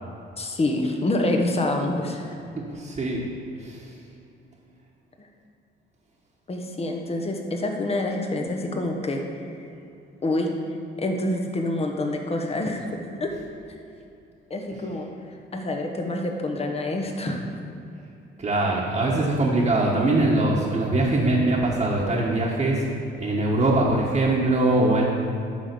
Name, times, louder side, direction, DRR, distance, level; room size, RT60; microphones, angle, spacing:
voice 1, 0.4-2.4 5.2-5.3 6.5-9.2 9.5-9.6 10.2-10.5 11.0-13.3 14.5-17.4, left 2 dB, 30° left, 2 dB, 1.2 m, -27 dB
voice 2, 2.5-3.2 3.6-3.9 18.4-22.9 23.2-25.0, right 2 dB, 30° right, -6 dB, 1.3 m, -22 dB
10.5 x 3.8 x 6.8 m, 2.7 s
cardioid pair, 90°, 20 cm